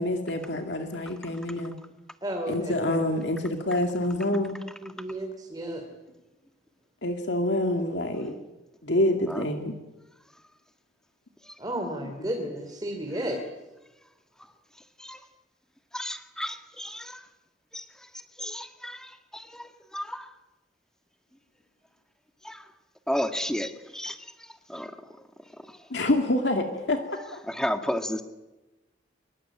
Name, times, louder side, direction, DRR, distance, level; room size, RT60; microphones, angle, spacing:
voice 1, 0.0-1.7 2.5-4.6 7.0-8.4 8.8-9.7 12.0-12.3 25.9-27.4, left 1 dB, 65° left, 4 dB, 2.3 m, -27 dB
voice 2, 2.2-2.7 4.8-5.8 11.6-13.4, right 1 dB, 20° right, 3 dB, 3.0 m, -32 dB
voice 3, 15.9-17.3 17.7-20.3 22.4-22.7 23.1-25.3 25.6-25.9 27.5-28.2, equal, 5° left, 7 dB, 1.7 m, -34 dB
25.5 x 23.5 x 8.9 m, 1.1 s
head